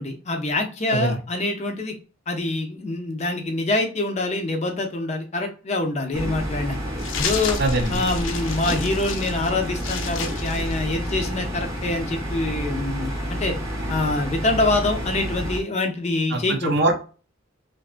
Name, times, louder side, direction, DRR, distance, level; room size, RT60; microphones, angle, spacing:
voice 1, 0.0-1.9 2.3-6.8 7.1-7.6 7.9-13.6 13.9-16.8, left 2 dB, 35° left, 4 dB, 0.5 m, -25 dB
sound 1, 6.1-15.6, equal, 15° right, 0.8 m, -29 dB
sound 2, 7.0-11.4, left 7 dB, 90° left, 0.5 m, -33 dB
voice 2, 7.6-8.0 16.3-16.9, right 2 dB, 60° right, 4 dB, 0.6 m, -22 dB
2.6 x 2.3 x 2.4 m, 0.35 s
head